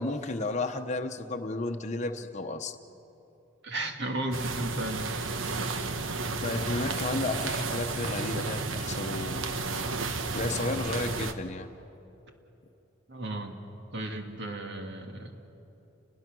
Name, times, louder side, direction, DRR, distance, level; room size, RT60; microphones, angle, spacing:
voice 1, 0.0-2.7 6.4-9.5 10.3-11.7, left 2 dB, 35° left, 4 dB, 0.9 m, -32 dB
voice 2, 3.6-5.9 13.1-13.6 13.9-15.4, right 1 dB, 60° right, 4 dB, 2.0 m, -35 dB
sound 1, 4.3-11.3, right 3 dB, 85° right, 1.2 m, -32 dB
30.0 x 20.5 x 6.2 m, 2.9 s
head